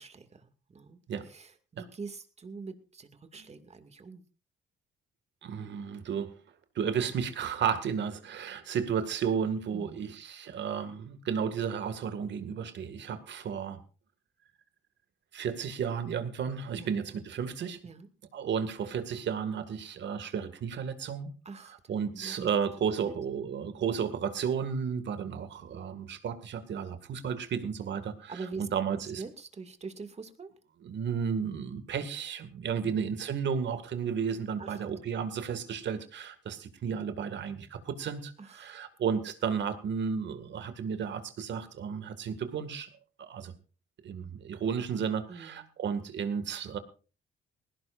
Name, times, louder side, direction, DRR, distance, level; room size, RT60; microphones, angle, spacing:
voice 1, 0.0-1.0 1.3-4.2 9.7-10.2 16.7-16.9 17.8-18.1 21.5-21.8 22.1-22.5 23.0-23.1 28.3-28.6 29.2-30.5 32.8-33.0 34.6-34.8 38.4-38.8 45.3-45.7, right 4 dB, 35° right, 8 dB, 2.3 m, -44 dB
voice 2, 5.4-6.4 6.8-13.8 15.3-17.8 18.3-21.3 21.9-29.2 30.8-42.9 43.2-43.5 44.0-46.8, right 7 dB, 65° right, 10 dB, 2.1 m, -33 dB
20.0 x 17.0 x 2.6 m, 0.34 s
cardioid pair, 90°, 20 cm